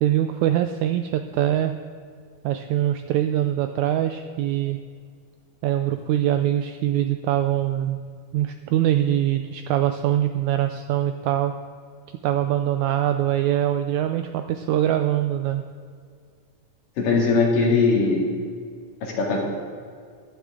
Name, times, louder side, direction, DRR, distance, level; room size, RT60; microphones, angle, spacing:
voice 1, 0.0-1.7 2.4-4.8 5.6-8.0 8.3-11.5 12.2-15.6, right 12 dB, 80° right, 8 dB, 1.7 m, -23 dB
voice 2, 17.0-18.3 19.0-19.4, left 4 dB, 75° left, -2 dB, 4.0 m, -20 dB
15.0 x 12.0 x 3.7 m, 2.1 s
omnidirectional pair, 3.9 m